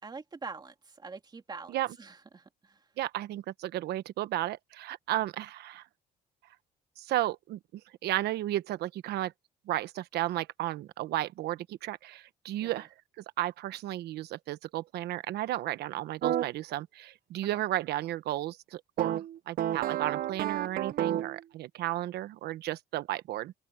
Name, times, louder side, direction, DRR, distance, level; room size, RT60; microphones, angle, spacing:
voice 1, 0.0-2.9 12.6-12.9 17.4-17.6, right 4 dB, 25° right, 2.5 m, -45 dB
voice 2, 3.0-5.8 7.0-9.3 9.7-12.9 13.2-23.5, right 14 dB, 75° right, 1.1 m, -33 dB
sound 1, 16.2-16.5 19.0-21.4, right 12 dB, 60° right, 0.7 m, -30 dB
open air
cardioid pair, 110°, 17 cm